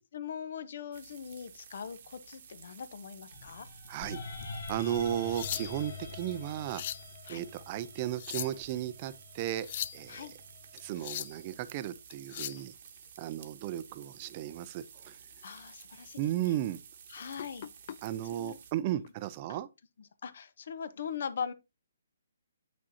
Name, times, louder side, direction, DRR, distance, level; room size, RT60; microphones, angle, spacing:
voice 1, 0.0-3.7 7.3-7.4 10.1-10.3 15.4-16.6 17.1-17.7 18.2-18.6 18.9-19.0 20.0-21.5, left 7 dB, 60° left, 0.8 m, -41 dB
sound 1, 0.9-18.7, right 7 dB, 50° right, 1.0 m, -53 dB
sound 2, 3.3-11.5, left 3 dB, 75° left, 1.7 m, -46 dB
voice 2, 3.9-4.2 4.7-6.8 7.3-9.7 9.9-10.3 10.7-12.7 13.2-15.2 16.2-16.8 18.0-19.7, right 12 dB, 30° right, 0.5 m, -35 dB
sound 3, 5.1-6.0 6.5-7.1 8.0-8.7 9.5-10.0 10.8-11.4 12.1-12.6 14.7-14.9 15.4-15.6 16.1-16.2 17.4-18.0 19.1-19.3, left 11 dB, 45° left, 0.3 m, -39 dB
7.5 x 6.2 x 2.7 m
hypercardioid pair, 155°, 0 cm